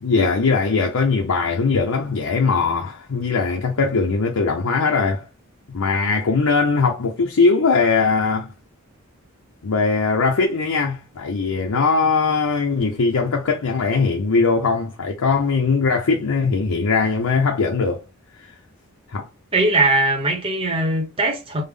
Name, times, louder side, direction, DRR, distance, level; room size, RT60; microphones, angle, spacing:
voice 1, 0.0-5.3 5.7-8.5 9.6-18.0 18.4-18.5 19.1-19.3, left 4 dB, 80° left, 0.6 m, -20 dB
voice 2, 19.5-21.6, right 2 dB, 25° right, 0.8 m, -20 dB
3.5 x 2.1 x 3.4 m
head